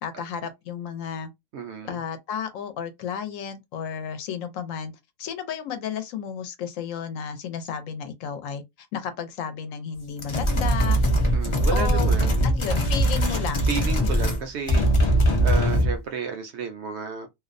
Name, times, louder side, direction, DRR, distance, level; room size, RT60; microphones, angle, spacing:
voice 1, 0.0-1.3 1.8-4.9 5.2-11.0 11.7-12.1 12.4-13.7, left 7 dB, 80° left, 1.0 m, -33 dB
voice 2, 1.5-2.0 11.3-12.5 13.7-15.1 15.4-17.3, right 5 dB, 65° right, 0.7 m, -32 dB
sound 1, 10.2-14.4 14.7-16.0, equal, 40° left, 0.4 m, -21 dB
2.5 x 2.0 x 2.5 m
omnidirectional pair, 1.4 m